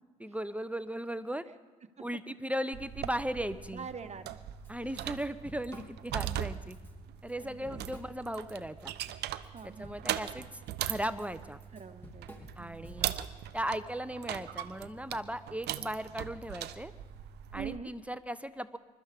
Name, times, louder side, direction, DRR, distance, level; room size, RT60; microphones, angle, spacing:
voice 1, 0.2-1.4 2.0-3.9 4.7-6.8 7.2-8.9 9.6-11.6 12.6-13.1 13.5-16.9 17.5-18.8, equal, 5° right, 12 dB, 0.8 m, -37 dB
sound 1, 2.7-17.8, right 12 dB, 60° right, 0.8 m, -40 dB
voice 2, 3.7-4.3 7.4-8.0 9.5-10.2 11.7-12.9 17.6-17.9, right 6 dB, 35° right, 8 dB, 1.4 m, -45 dB
Drum kit / Drum, 4.6-4.7 5.1-6.4 6.7-6.9 7.3-8.5 8.9-13.3, right 1 dB, 10° left, 3.1 m, -51 dB
27.0 x 13.0 x 3.6 m, 1.3 s
hypercardioid pair, 55°, 19 cm